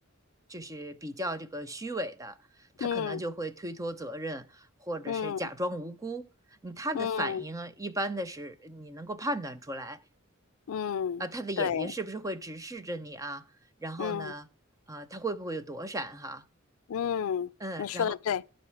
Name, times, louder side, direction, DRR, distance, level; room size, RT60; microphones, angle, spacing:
voice 1, 0.5-2.4 2.8-6.3 6.6-10.0 11.2-13.4 13.8-14.5 14.9-16.4 17.6-18.2, right 1 dB, 15° right, 0.7 m, -36 dB
voice 2, 2.8-3.2 5.1-5.4 6.9-7.4 10.7-11.2 11.6-11.9 14.0-14.3 16.9-17.5 17.8-18.4, left 7 dB, 90° left, 0.4 m, -30 dB
12.0 x 5.4 x 4.6 m
head